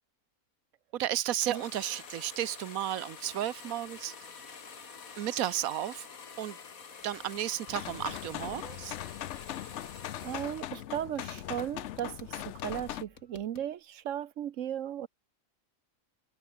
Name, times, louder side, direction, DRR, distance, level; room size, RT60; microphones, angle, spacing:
voice 1, 0.9-4.6 5.2-6.1 6.4-6.6 7.0-9.0, right 12 dB, 90° right, 1.2 m, -33 dB
sound 1, 1.5-10.9 11.2-13.7, left 6 dB, 85° left, 2.3 m, -48 dB
sound 2, 7.0-13.5, left 1 dB, 30° left, 7.9 m, -66 dB
sound 3, 7.7-13.0, left 13 dB, 65° left, 0.8 m, -40 dB
voice 2, 10.2-15.1, right 10 dB, 70° right, 1.1 m, -36 dB
omnidirectional pair, 1.4 m